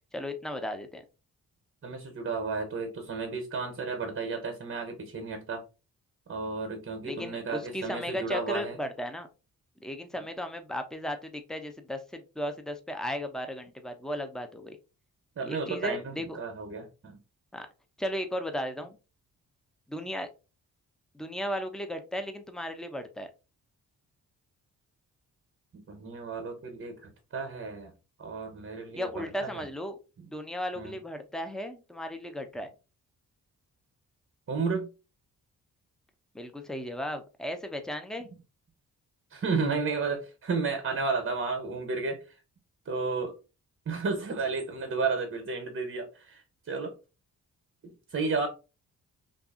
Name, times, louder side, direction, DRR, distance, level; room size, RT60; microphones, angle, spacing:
voice 1, 0.1-1.0 7.0-9.3 9.8-14.8 15.5-16.4 17.5-17.7 18.0-19.0 19.9-20.3 21.1-23.3 29.0-30.0 30.3-32.7 36.3-38.3, equal, ahead, 0.5 m, -35 dB
voice 2, 1.8-5.6 6.3-8.8 15.4-17.2 25.9-27.9 28.2-29.6 30.8-31.0 34.5-34.9 39.3-42.2 42.9-43.3 43.9-46.9 47.8-48.5, right 4 dB, 40° right, 0.7 m, -32 dB
2.7 x 2.4 x 2.3 m
supercardioid pair, 50°, 36 cm